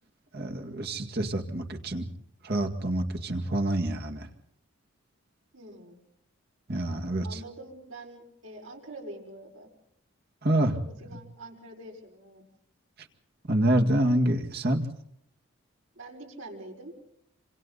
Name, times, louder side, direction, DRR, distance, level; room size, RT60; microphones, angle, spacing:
voice 1, 0.3-2.1 2.4-4.3 6.7-7.4 10.4-10.8 11.1-11.2 13.4-14.8, right 1 dB, 45° right, 3 dB, 2.0 m, -27 dB
voice 2, 5.5-6.0 7.2-9.7 10.6-12.4 16.0-16.9, right 1 dB, 65° right, 1 dB, 5.5 m, -45 dB
27.5 x 26.5 x 4.1 m, 0.74 s
head